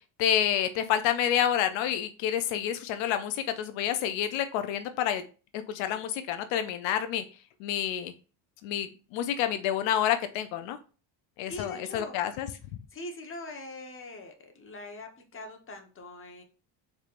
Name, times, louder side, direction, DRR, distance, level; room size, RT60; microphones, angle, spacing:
voice 1, 0.2-5.2 5.5-7.2 7.6-8.1 8.6-10.8 11.4-12.5, left 10 dB, 80° left, 9 dB, 0.6 m, -28 dB
voice 2, 11.5-12.1 12.9-16.4, left 2 dB, 30° left, 4 dB, 1.0 m, -42 dB
4.3 x 3.4 x 2.5 m, 0.36 s
supercardioid pair, 85°, 45 cm